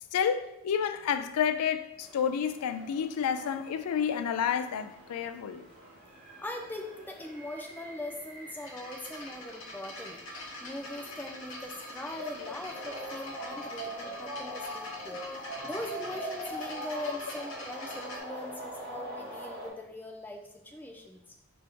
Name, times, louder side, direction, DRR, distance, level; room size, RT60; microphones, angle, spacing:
voice 1, 0.1-5.6 12.2-12.5, left 7 dB, 90° left, 0.3 m, -30 dB
sound 1, 2.0-19.7, right 1 dB, 25° right, 1.4 m, -44 dB
voice 2, 6.4-10.2 10.6-21.2, left 1 dB, 10° left, 0.4 m, -41 dB
sound 2, 8.6-18.2, left 1 dB, 55° left, 0.9 m, -44 dB
4.9 x 3.0 x 3.4 m
head